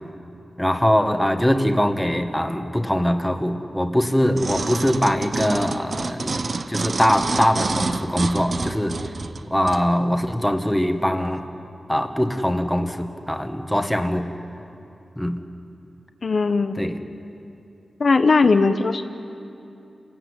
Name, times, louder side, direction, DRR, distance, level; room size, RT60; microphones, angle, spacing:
voice 1, 0.6-6.4 6.7-9.0 9.5-11.4 11.9-14.3 15.2-15.4 16.8-17.0, equal, 5° left, 6 dB, 1.5 m, -22 dB
sound 1, 4.4-9.8 10.4-10.5, right 3 dB, 55° right, 1.0 m, -28 dB
voice 2, 16.2-16.7 18.0-19.0, left 4 dB, 55° left, 7 dB, 0.9 m, -18 dB
29.0 x 17.0 x 9.7 m, 2.7 s
wide cardioid pair, 105°, 0 cm